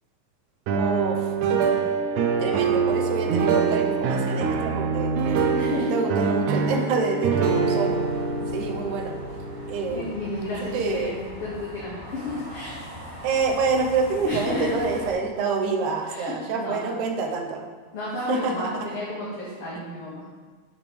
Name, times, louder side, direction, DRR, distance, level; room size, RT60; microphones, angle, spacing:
voice 1, 0.7-1.3 2.4-5.1 5.9-8.0 8.5-9.2 9.7-10.3 10.7-11.1 13.2-17.7 18.3-18.9, right 4 dB, 65° right, 1 dB, 2.0 m, -27 dB
sound 1, 0.7-10.6, right 5 dB, 85° right, 1.7 m, -24 dB
sound 2, 1.6-11.6, right 1 dB, 70° left, 4.0 m, -43 dB
voice 2, 5.5-6.3 9.9-12.8 14.2-14.8 16.1-16.9 17.9-20.2, left 2 dB, 45° left, -8 dB, 2.4 m, -32 dB
sound 3, 7.8-15.1, left 1 dB, 30° right, 3.4 m, -41 dB
13.0 x 7.3 x 3.5 m, 1.5 s
omnidirectional pair, 4.3 m